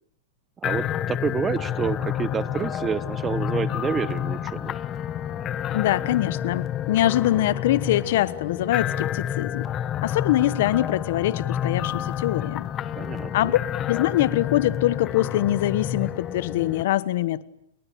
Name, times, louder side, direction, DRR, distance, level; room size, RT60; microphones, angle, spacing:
sound 1, 0.6-16.8, left 10 dB, 25° left, 1.0 m, -29 dB
voice 1, 0.6-4.8 12.9-13.5, right 6 dB, 15° right, 1.1 m, -29 dB
voice 2, 5.7-9.7 10.0-12.7 13.3-13.6 13.9-17.4, left 14 dB, 60° left, 1.2 m, -23 dB
30.0 x 22.5 x 8.7 m
supercardioid pair, 150°, 0 cm